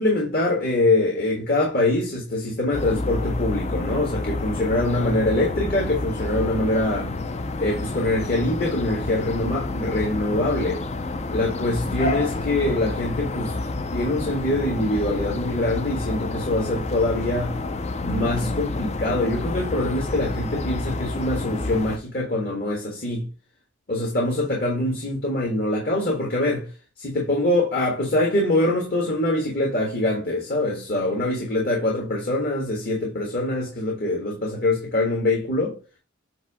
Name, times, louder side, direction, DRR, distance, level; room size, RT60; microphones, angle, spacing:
voice 1, 0.0-7.1 7.6-10.8 11.3-13.5 13.9-17.6 18.0-23.3 23.9-26.7 27.0-35.8, left 1 dB, 50° left, 1.7 m, -24 dB
sound 1, 2.7-22.0, left 2 dB, 35° left, 0.5 m, -29 dB
7.9 x 2.7 x 4.9 m
head